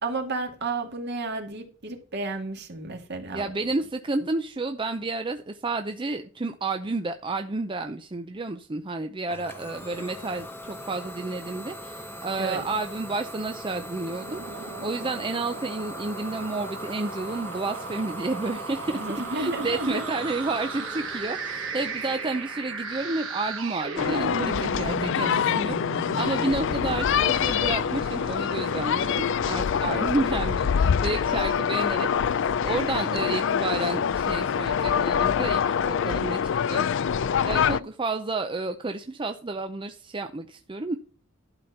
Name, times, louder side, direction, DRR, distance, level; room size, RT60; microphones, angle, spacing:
voice 1, 0.0-3.5 12.4-12.6 18.9-20.0 29.8-30.1 37.5-37.9, right 3 dB, 55° right, 3 dB, 2.2 m, -32 dB
voice 2, 3.3-19.0 19.3-36.4 36.7-37.2 37.4-41.0, right 3 dB, 25° right, 7 dB, 0.6 m, -31 dB
Idling / Domestic sounds home sounds, 9.3-24.8, equal, 10° left, 0.9 m, -41 dB
sound 1, 14.0-30.4, right 3 dB, 80° right, 2.4 m, -37 dB
sound 2, 24.0-37.8, left 7 dB, 65° left, 0.4 m, -25 dB
12.0 x 4.4 x 6.6 m, 0.39 s
head